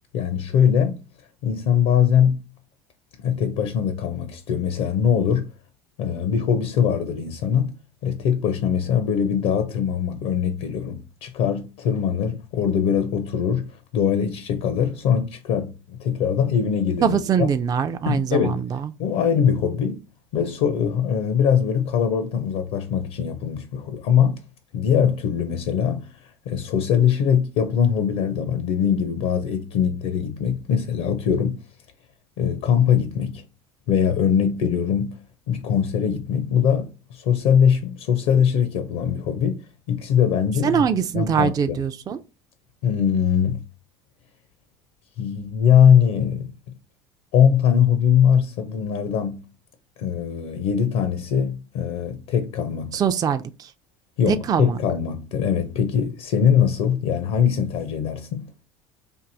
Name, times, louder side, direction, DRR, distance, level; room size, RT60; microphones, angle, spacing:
voice 1, 0.1-1.0 1.4-2.4 3.2-5.5 6.0-7.7 8.0-17.5 18.1-18.6 19.0-20.0 20.3-24.4 24.7-31.6 32.4-33.4 33.9-35.2 35.5-40.8 41.1-41.8 42.8-43.6 45.2-46.5 47.3-49.4 50.0-53.0 54.2-58.5, left 8 dB, 70° left, 0.6 m, -22 dB
voice 2, 17.0-18.9 40.6-42.2 52.9-53.7 54.3-54.8, right 7 dB, 25° right, 0.3 m, -23 dB
4.5 x 2.6 x 2.5 m
hypercardioid pair, 75°, 15 cm